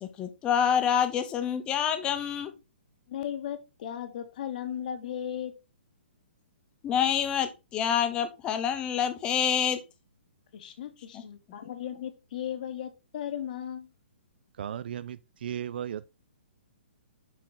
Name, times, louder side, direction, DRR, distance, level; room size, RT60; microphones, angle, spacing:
voice 1, 0.0-2.5 6.8-9.8 11.1-11.2, left 8 dB, 15° left, 0.6 m, -27 dB
voice 2, 3.1-5.5 10.5-13.9, left 10 dB, 45° left, 0.8 m, -36 dB
voice 3, 14.6-16.1, right 9 dB, 55° right, 0.3 m, -36 dB
6.1 x 4.4 x 3.7 m
hypercardioid pair, 165°, 6 cm